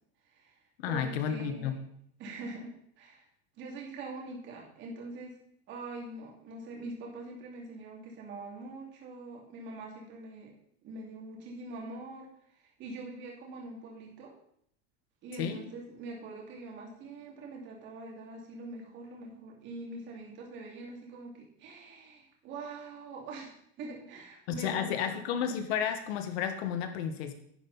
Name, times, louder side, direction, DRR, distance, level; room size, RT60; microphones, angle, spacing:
voice 1, 0.2-0.6 0.9-1.8 2.2-3.3 3.6-5.4 5.7-10.5 10.8-14.3 15.2-25.2, right 2 dB, 35° right, -1 dB, 2.7 m, -44 dB
voice 2, 0.8-1.7 15.4-15.6 24.6-27.3, left 8 dB, 65° left, 8 dB, 1.6 m, -32 dB
10.5 x 9.6 x 4.2 m, 0.68 s
supercardioid pair, 170°, 33 cm